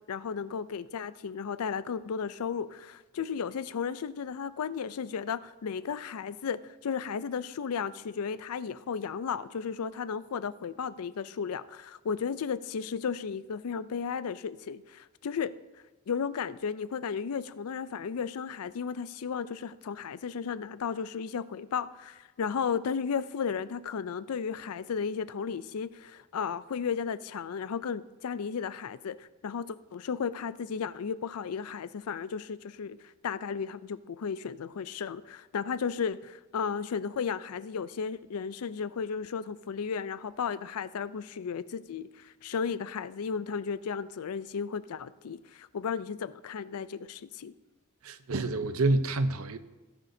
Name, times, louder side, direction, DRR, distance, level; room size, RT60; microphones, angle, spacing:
voice 1, 0.1-15.5 16.1-33.0 33.2-47.5, left 6 dB, 80° left, 16 dB, 0.4 m, -34 dB
voice 2, 48.0-49.6, right 2 dB, 70° right, 11 dB, 0.7 m, -28 dB
17.5 x 10.5 x 2.7 m, 1.1 s
head